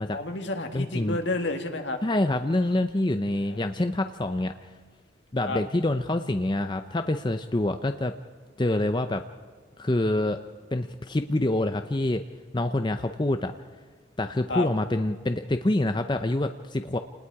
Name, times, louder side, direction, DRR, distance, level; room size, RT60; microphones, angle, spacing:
voice 1, 0.1-2.0 3.5-3.6 5.4-5.6 14.5-14.7, left 2 dB, 70° left, 5 dB, 1.9 m, -30 dB
voice 2, 0.7-1.2 2.0-4.5 5.3-8.1 8.6-9.2 9.8-10.4 10.7-12.2 12.5-13.5 14.2-17.0, left 1 dB, 25° left, 7 dB, 0.6 m, -26 dB
28.5 x 20.0 x 4.8 m, 1.5 s
head